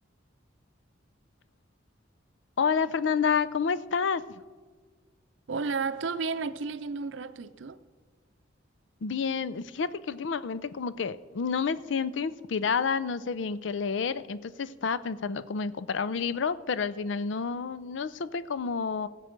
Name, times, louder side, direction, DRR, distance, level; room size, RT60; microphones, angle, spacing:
voice 1, 2.6-4.2 9.0-19.1, left 5 dB, 70° left, 0.5 m, -29 dB
voice 2, 5.5-7.8, right 4 dB, 75° right, 0.5 m, -32 dB
17.5 x 7.5 x 5.2 m
head